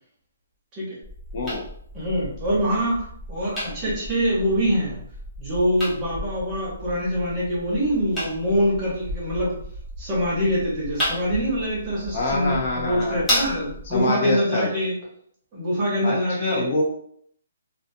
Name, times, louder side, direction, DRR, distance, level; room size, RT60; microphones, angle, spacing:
sound 1, 1.0-14.0, equal, 10° left, 0.7 m, -33 dB
voice 1, 1.3-1.6 12.1-13.2 13.9-14.7 16.0-16.8, left 2 dB, 45° left, -1 dB, 0.6 m, -25 dB
voice 2, 1.9-5.0 5.4-9.6 10.0-14.9 15.5-16.7, equal, 20° right, -6 dB, 1.0 m, -24 dB
2.5 x 2.3 x 2.6 m, 0.64 s
hypercardioid pair, 165°, 0 cm